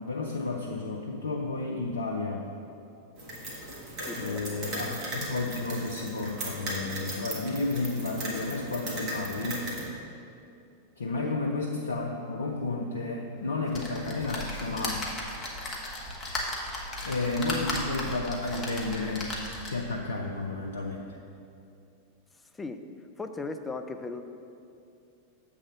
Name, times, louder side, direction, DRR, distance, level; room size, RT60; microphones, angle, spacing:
voice 1, 0.0-2.5 4.1-9.7 11.0-15.0 17.0-19.4 19.7-21.2, left 3 dB, 70° left, 1 dB, 0.4 m, -32 dB
sound 1, 3.2-9.9, right 1 dB, 40° right, 1.5 m, -37 dB
voice 2, 4.1-4.6 11.2-11.4 22.5-22.8 23.2-24.2, left 3 dB, 10° left, 7 dB, 0.4 m, -37 dB
sound 2, 13.7-19.9 20.5-20.6 20.8-20.9, left 1 dB, 25° left, 1.1 m, -35 dB
7.4 x 3.7 x 6.1 m, 2.6 s
figure-of-eight pair, 90°, 0 cm